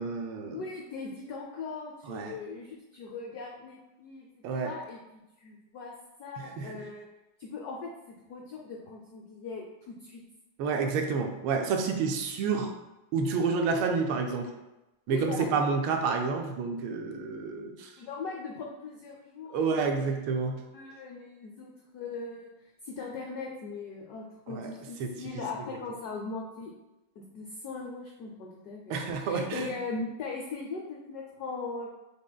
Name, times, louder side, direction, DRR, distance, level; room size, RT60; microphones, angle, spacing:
voice 1, 0.0-0.6 2.1-2.3 4.4-4.7 6.4-6.7 10.6-12.7 13.1-14.5 15.1-17.9 19.5-20.6 24.5-24.7 25.0-25.1 28.9-29.7, right 5 dB, 85° right, 4 dB, 1.5 m, -29 dB
voice 2, 0.5-5.9 6.2-7.1 7.4-7.9 8.3-10.2 15.1-15.5 18.0-26.7 27.2-31.9, left 4 dB, 85° left, -1 dB, 0.8 m, -40 dB
5.0 x 3.6 x 2.2 m, 1.0 s
omnidirectional pair, 2.3 m